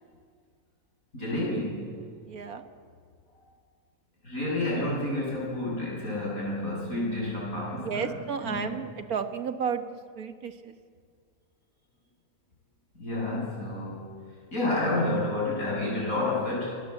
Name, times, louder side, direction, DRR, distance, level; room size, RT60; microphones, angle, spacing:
voice 1, 1.1-2.0 3.3-3.4 4.2-8.8 13.0-14.1 14.5-16.8, left 2 dB, 70° left, -5 dB, 8.3 m, -30 dB
voice 2, 2.3-2.6 7.8-9.8 10.2-10.8, right 6 dB, 75° right, 8 dB, 1.9 m, -32 dB
27.0 x 21.5 x 7.9 m, 2.1 s
omnidirectional pair, 1.5 m